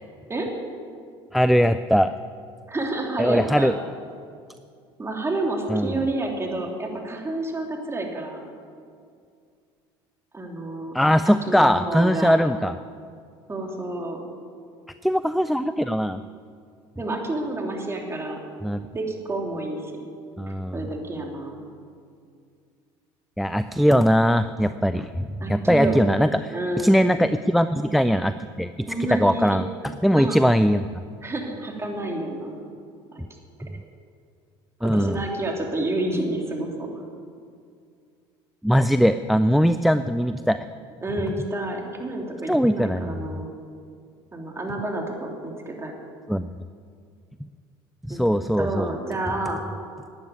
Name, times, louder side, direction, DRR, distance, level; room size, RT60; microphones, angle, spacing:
voice 1, 1.3-2.1 3.2-3.7 5.7-6.0 10.9-12.7 15.0-16.2 18.6-18.8 20.4-20.8 23.4-30.9 34.8-35.2 38.6-40.6 42.5-43.2 46.3-46.5 48.1-48.9, equal, ahead, 12 dB, 0.4 m, -21 dB
voice 2, 2.7-3.8 5.0-8.4 10.3-10.9 11.3-12.3 13.5-14.2 17.0-18.4 18.9-19.9 20.7-21.6 25.4-26.0 26.5-27.0 28.9-29.6 30.0-30.4 31.2-32.5 33.1-33.2 34.8-36.9 41.0-43.5 44.3-45.9 48.1-48.2 48.6-49.6, right 2 dB, 20° right, 1 dB, 3.2 m, -29 dB
12.5 x 9.6 x 9.6 m, 2.3 s
supercardioid pair, 85°, 13 cm